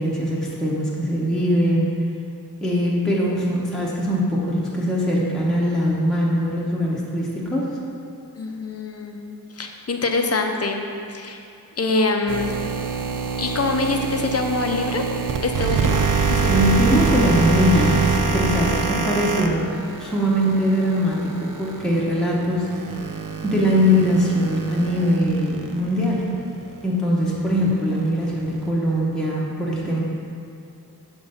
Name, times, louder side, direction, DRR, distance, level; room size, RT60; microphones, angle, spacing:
voice 1, 0.0-1.9 2.6-7.8 16.4-19.7 20.0-22.7 23.4-26.2 26.8-30.0, equal, ahead, -6 dB, 1.0 m, -21 dB
voice 2, 8.3-9.2 9.5-11.4 11.8-12.5 13.4-15.0 15.4-16.0 16.3-16.7 18.6-18.9, left 3 dB, 40° left, 3 dB, 0.6 m, -25 dB
sound 1, 12.3-26.4 26.7-26.8 27.5-28.7, right 5 dB, 60° right, 0.5 m, -25 dB
7.0 x 2.6 x 5.5 m, 2.5 s
wide cardioid pair, 55°, 36 cm